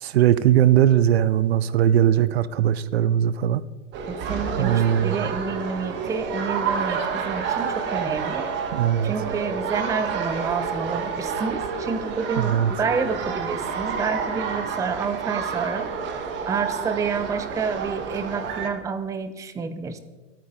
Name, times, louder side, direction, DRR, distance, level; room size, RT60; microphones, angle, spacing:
voice 1, 0.0-3.6 4.6-5.2 8.7-9.1 12.4-12.7, right 10 dB, 55° right, 17 dB, 0.7 m, -19 dB
sound 1, 3.9-18.7, right 6 dB, 30° right, 1.6 m, -29 dB
voice 2, 4.1-8.5 9.0-15.9 16.5-20.0, right 5 dB, 10° right, 11 dB, 0.6 m, -29 dB
24.0 x 9.0 x 3.9 m, 1.2 s
figure-of-eight pair, 105°, 39 cm